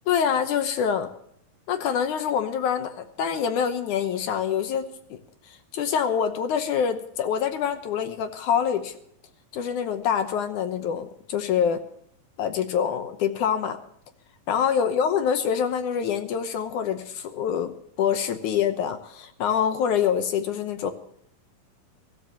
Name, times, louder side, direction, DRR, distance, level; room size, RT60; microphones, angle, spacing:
voice 1, 0.1-1.1 1.7-5.2 5.5-8.9 9.5-11.8 12.4-13.8 14.5-20.9, left 8 dB, 70° left, 8 dB, 2.2 m, -25 dB
24.0 x 13.5 x 2.9 m, 0.68 s
omnidirectional pair, 4.0 m